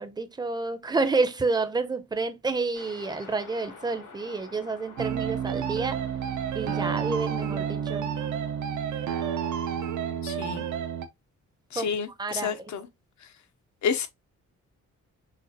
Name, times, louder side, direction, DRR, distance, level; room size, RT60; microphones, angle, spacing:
voice 1, 0.0-6.0 6.5-8.1 11.7-11.9 12.2-12.6, right 3 dB, 15° right, 0.5 m, -29 dB
sound 1, 2.7-8.7, left 4 dB, 85° left, 2.5 m, -49 dB
sound 2, 5.0-11.1, right 8 dB, 75° right, 0.6 m, -30 dB
voice 2, 10.2-10.6 11.7-12.9 13.2-13.3 13.8-14.1, left 6 dB, 70° left, 0.8 m, -30 dB
6.5 x 2.4 x 2.7 m
wide cardioid pair, 155°, 30 cm